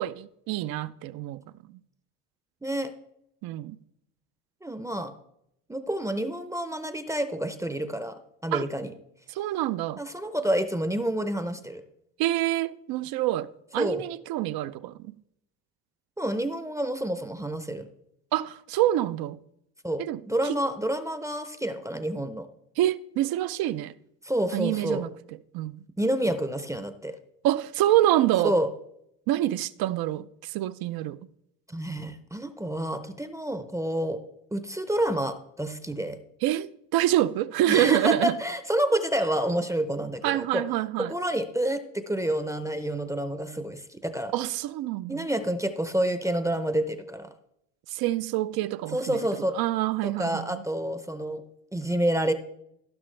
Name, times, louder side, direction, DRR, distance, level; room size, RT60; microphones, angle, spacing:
voice 1, 0.0-1.4 1.7-1.8 3.4-3.8 8.5-8.7 9.3-10.0 12.2-15.2 18.3-19.4 20.0-20.5 22.8-23.9 24.5-25.1 25.5-25.9 27.4-28.6 29.3-31.3 36.4-38.4 40.2-41.1 44.3-45.3 47.9-49.2 49.5-50.6, right 14 dB, 65° right, 0.5 m, -26 dB
voice 2, 4.6-5.1 5.7-8.9 10.0-11.8 13.8-14.0 16.2-17.9 19.8-22.5 24.2-25.0 26.0-27.2 28.4-28.7 31.7-34.2 34.5-36.2 37.7-40.6 41.0-44.3 45.1-47.3 48.9-49.5 50.0-51.4 51.7-52.3, right 1 dB, 10° right, 0.6 m, -28 dB
15.0 x 5.9 x 3.2 m
supercardioid pair, 90°, 39 cm